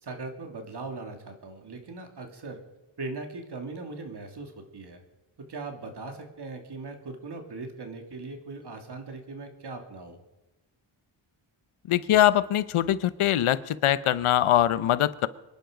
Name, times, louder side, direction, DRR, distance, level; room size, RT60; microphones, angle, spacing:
voice 1, 0.0-2.6 3.0-5.0 5.5-10.2, right 3 dB, 55° right, 4 dB, 2.8 m, -39 dB
voice 2, 11.9-15.3, left 12 dB, 85° left, 16 dB, 0.9 m, -22 dB
24.5 x 10.5 x 5.1 m, 1.0 s
wide cardioid pair, 105°, 49 cm